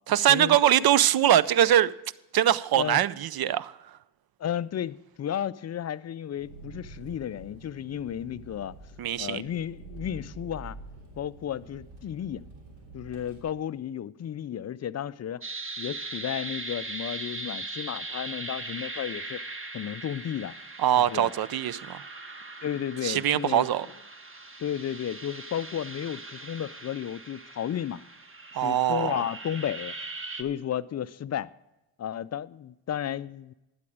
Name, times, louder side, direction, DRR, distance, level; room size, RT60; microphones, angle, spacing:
voice 1, 0.1-1.9 2.3-3.7 9.0-9.4 20.8-22.0 23.0-23.9 28.5-29.2, right 11 dB, 50° right, 0.6 m, -22 dB
voice 2, 4.4-8.7 9.2-10.8 11.2-12.4 12.9-15.4 15.8-19.4 19.7-20.5 21.0-21.3 22.6-23.7 24.6-28.0 28.5-29.9 30.4-31.5 32.0-33.5, left 10 dB, 35° left, 0.4 m, -33 dB
Engine, 6.3-13.4, right 2 dB, 85° right, 3.3 m, -47 dB
sound 1, 15.4-30.4, right 2 dB, 25° right, 1.4 m, -40 dB
12.0 x 8.9 x 4.8 m
supercardioid pair, 60°, 49 cm